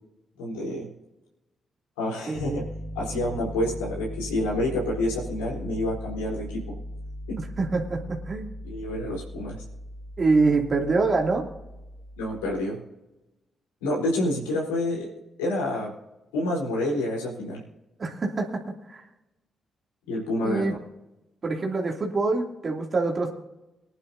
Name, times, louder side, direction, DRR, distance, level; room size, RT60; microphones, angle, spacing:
voice 1, 0.4-0.9 2.0-2.6 2.9-6.7 7.3-7.4 8.6-9.6 12.2-12.8 13.8-15.1 15.4-15.9 16.3-17.6 20.1-20.8, left 1 dB, 85° left, -3 dB, 4.0 m, -28 dB
Piano, 2.3-12.6, equal, 25° right, 4.1 m, -38 dB
voice 2, 2.3-2.6 7.6-8.5 10.2-11.4 18.0-18.6 18.9-19.0 20.4-20.7 21.4-23.3, right 3 dB, 45° right, 0 dB, 2.9 m, -25 dB
23.5 x 10.5 x 2.8 m, 1.0 s
hypercardioid pair, 40°, 0 cm